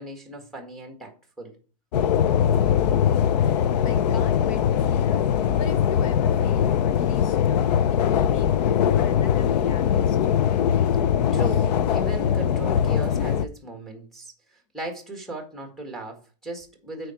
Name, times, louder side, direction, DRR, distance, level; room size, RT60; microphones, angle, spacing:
voice 1, 0.0-1.5 11.3-17.1, right 2 dB, ahead, 1.6 m, -37 dB
sound 1, 1.9-13.5, left 9 dB, 90° left, 0.5 m, -21 dB
voice 2, 2.3-8.5 8.9-10.5 11.4-11.6, left 5 dB, 60° left, 0.9 m, -41 dB
8.6 x 4.7 x 4.4 m
supercardioid pair, 165°, 20 cm